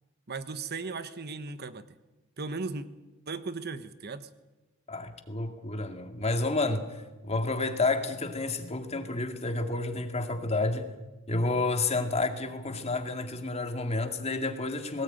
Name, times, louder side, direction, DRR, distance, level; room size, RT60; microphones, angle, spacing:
voice 1, 0.3-1.9 2.4-2.9 3.3-4.3, right 4 dB, 50° right, 1.1 m, -36 dB
voice 2, 4.9-6.8 7.2-10.9 11.3-15.0, left 2 dB, 30° left, 2.2 m, -30 dB
21.0 x 18.5 x 9.2 m
head